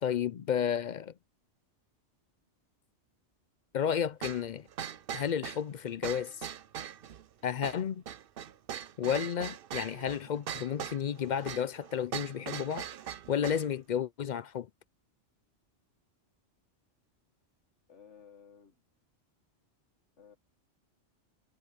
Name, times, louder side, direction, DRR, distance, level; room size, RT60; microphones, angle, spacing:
voice 1, 0.0-1.1 3.7-4.7 5.1-6.5 7.4-8.0 9.0-12.9 13.3-14.7, left 8 dB, 60° left, 0.5 m, -32 dB
sound 1, 4.2-13.7, right 9 dB, 55° right, 0.8 m, -41 dB
voice 2, 17.9-18.8 20.2-20.4, left 7 dB, 80° left, 1.9 m, -55 dB
omnidirectional pair, 1.2 m